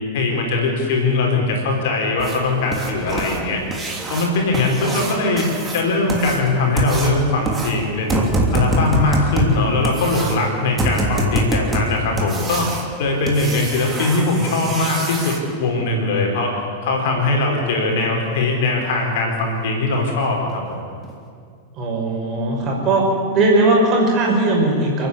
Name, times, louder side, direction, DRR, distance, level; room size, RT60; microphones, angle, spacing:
voice 1, 0.1-3.6 4.1-5.5 5.7-8.2 8.5-12.7 13.0-16.5 16.8-20.8, left 2 dB, 55° left, 1 dB, 4.7 m, -20 dB
sound 1, 2.2-15.4 17.7-17.8 18.2-18.3 18.8-18.9 19.4-19.5 19.9-20.1 20.5-20.6 21.0-21.1, right 1 dB, 15° right, 3.1 m, -25 dB
voice 2, 21.8-23.0 23.3-25.1, right 2 dB, 35° right, -1 dB, 6.1 m, -18 dB
30.0 x 10.0 x 8.7 m, 2.2 s
figure-of-eight pair, 90°, 0 cm